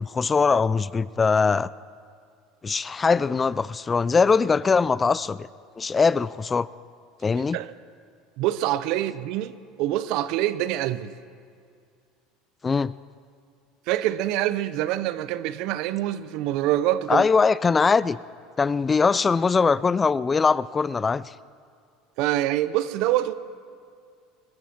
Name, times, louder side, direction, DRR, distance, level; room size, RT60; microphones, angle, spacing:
voice 1, 0.0-1.7 2.6-5.5 5.8-6.7 7.2-7.6 12.6-12.9 17.1-18.2 18.6-21.3, left 5 dB, 20° left, 19 dB, 0.3 m, -21 dB
voice 2, 8.4-11.1 13.9-17.2 22.2-23.3, right 13 dB, 65° right, 15 dB, 0.7 m, -25 dB
21.0 x 14.0 x 4.5 m, 2.2 s
supercardioid pair, 100°, 0 cm